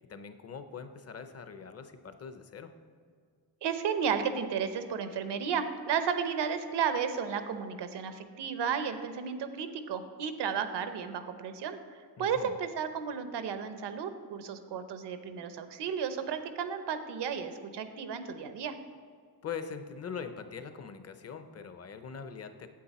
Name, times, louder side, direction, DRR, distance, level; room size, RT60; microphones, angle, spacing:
voice 1, 0.1-2.7 12.2-12.5 19.4-22.7, left 6 dB, 40° left, 8 dB, 0.7 m, -42 dB
voice 2, 3.6-11.8 12.2-18.8, right 7 dB, 90° right, 9 dB, 0.8 m, -33 dB
8.6 x 8.1 x 4.2 m, 2.1 s
cardioid pair, 115°, 40 cm